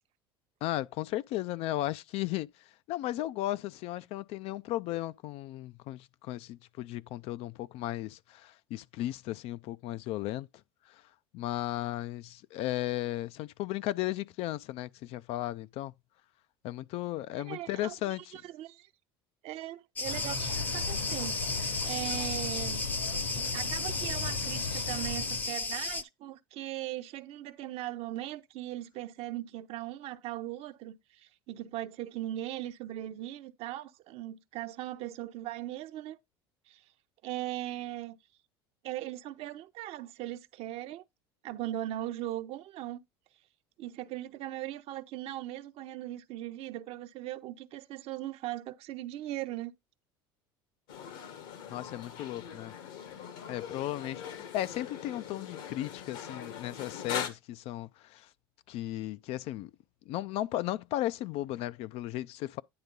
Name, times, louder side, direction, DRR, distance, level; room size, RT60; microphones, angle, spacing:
voice 1, 0.6-10.5 10.9-11.0 11.3-15.9 16.6-18.4 51.7-52.7 53.5-58.3 58.7-59.7 60.1-62.6, left 15 dB, 55° left, 0.4 m, -35 dB
voice 2, 17.4-18.9 19.4-22.8 23.3-36.2 36.7-36.8 37.2-38.2 38.8-41.0 41.4-43.0 43.8-49.7, right 14 dB, 55° right, 0.8 m, -39 dB
sound 1, 20.0-25.5, left 5 dB, 90° left, 4.1 m, -38 dB
Cricket, 20.0-26.0, left 3 dB, 15° left, 0.6 m, -34 dB
sound 2, 50.9-57.3, left 8 dB, 75° left, 1.7 m, -41 dB
9.7 x 3.5 x 5.3 m
hypercardioid pair, 80°, 12 cm